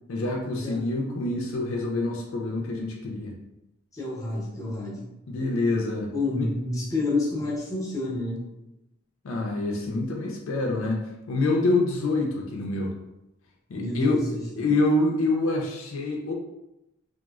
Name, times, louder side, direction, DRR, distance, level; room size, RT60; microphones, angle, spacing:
voice 1, 0.1-3.3 5.3-6.1 6.4-6.5 9.2-11.0 11.3-12.9 13.7-14.2 14.6-16.3, left 2 dB, 70° left, 1 dB, 0.4 m, -26 dB
voice 2, 3.9-5.1 6.1-8.4 13.8-14.7, left 2 dB, 15° left, -6 dB, 0.7 m, -29 dB
3.0 x 2.0 x 2.3 m, 0.89 s
head